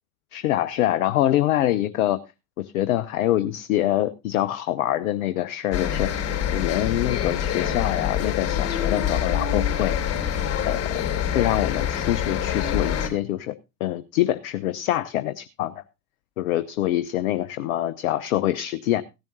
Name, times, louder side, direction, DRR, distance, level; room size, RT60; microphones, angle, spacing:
voice 1, 0.3-2.2 2.6-6.1 6.5-10.0 10.6-10.8 11.3-13.5 13.8-15.8 16.4-19.0, left 13 dB, 65° left, 13 dB, 0.7 m, -25 dB
sound 1, 5.7-13.1, left 9 dB, 35° left, 3.3 m, -25 dB
16.0 x 10.5 x 2.7 m, 0.25 s
figure-of-eight pair, 70°, 45 cm